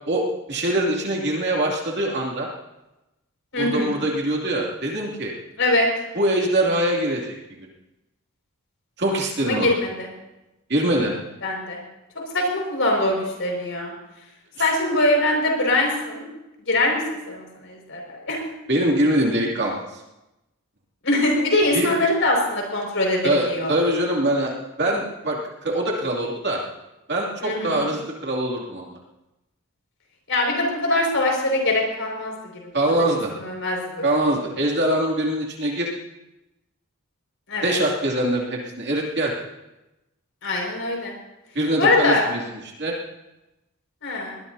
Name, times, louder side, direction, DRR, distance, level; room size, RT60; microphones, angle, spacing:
voice 1, 0.1-2.5 3.6-5.3 6.1-7.3 9.0-9.7 10.7-11.1 14.6-14.7 18.7-20.0 21.7-21.9 23.2-24.5 24.8-26.6 27.1-29.0 32.7-33.3 34.0-35.9 37.6-39.3 41.5-42.4 42.8-43.0, right 1 dB, 50° right, -2 dB, 2.7 m, -23 dB
voice 2, 3.5-4.0 5.6-5.9 9.4-10.1 11.4-11.8 12.3-13.9 14.6-16.2 16.7-17.0 17.3-18.4 21.0-23.7 27.4-27.9 30.3-32.3 33.4-34.0 37.5-37.7 40.4-41.1 41.8-42.2 44.0-44.4, left 2 dB, 60° left, 0 dB, 5.6 m, -22 dB
22.0 x 20.0 x 2.8 m, 0.97 s
head